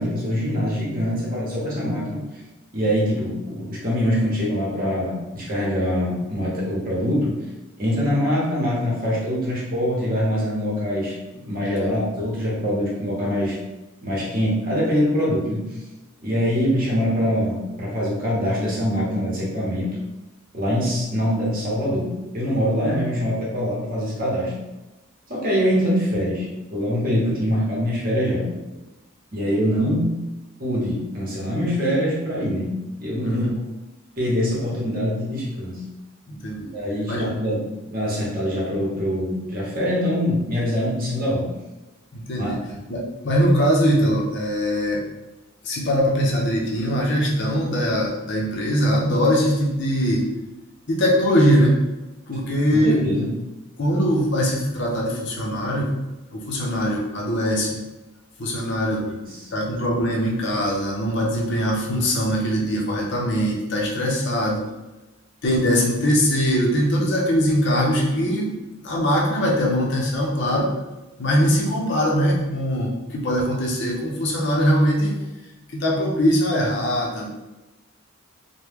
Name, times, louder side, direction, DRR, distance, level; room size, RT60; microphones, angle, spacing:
voice 1, 0.0-2.2 2.7-7.4 7.8-13.6 14.0-15.7 16.2-19.9 20.5-24.5 25.3-28.5 29.3-30.2 30.6-32.7 33.0-33.5 34.2-35.8 36.7-37.6 37.9-41.5 42.4-42.5 52.7-53.3 59.0-59.5, equal, 40° right, -5 dB, 0.9 m, -24 dB
voice 2, 33.2-33.5 36.3-36.7 37.1-37.3 42.1-42.6 42.9-45.0 45.6-50.2 50.9-51.9 52.3-53.0 53.8-55.9 56.3-57.8 58.4-59.0 59.5-64.6 65.4-68.5 68.8-70.7 71.2-75.2 75.7-77.3, equal, 55° left, -2 dB, 0.7 m, -21 dB
3.0 x 2.2 x 3.5 m, 1.0 s
head